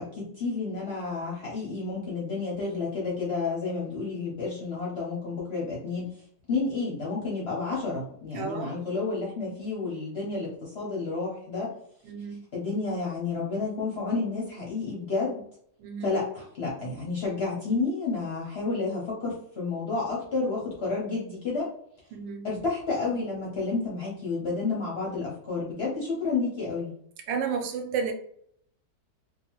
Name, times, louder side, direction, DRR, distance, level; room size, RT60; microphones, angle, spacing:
voice 1, 0.0-6.1 6.5-11.8 12.5-15.4 16.0-21.7 22.4-26.9, left 3 dB, 55° left, 0.7 m, -30 dB
voice 2, 8.3-8.7 12.0-12.4 15.8-16.2 22.1-22.5 27.3-28.1, right 6 dB, 85° right, 1.3 m, -32 dB
2.8 x 2.3 x 2.9 m
omnidirectional pair, 1.9 m